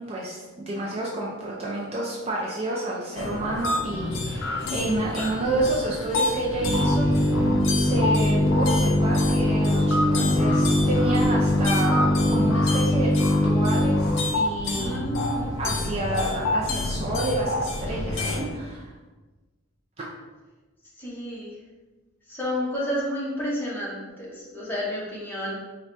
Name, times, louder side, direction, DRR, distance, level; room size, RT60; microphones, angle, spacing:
voice 1, 0.0-7.1 7.7-15.0 15.6-18.9, right 2 dB, 30° right, -4 dB, 0.4 m, -29 dB
sound 1, 3.2-18.5, left 2 dB, 65° left, 0.5 m, -29 dB
sound 2, 6.6-14.1, left 1 dB, 15° right, 1.0 m, -22 dB
voice 2, 14.8-15.5 21.0-21.5 22.3-25.6, left 1 dB, 10° left, -6 dB, 0.8 m, -30 dB
4.6 x 2.2 x 2.6 m, 1.2 s
head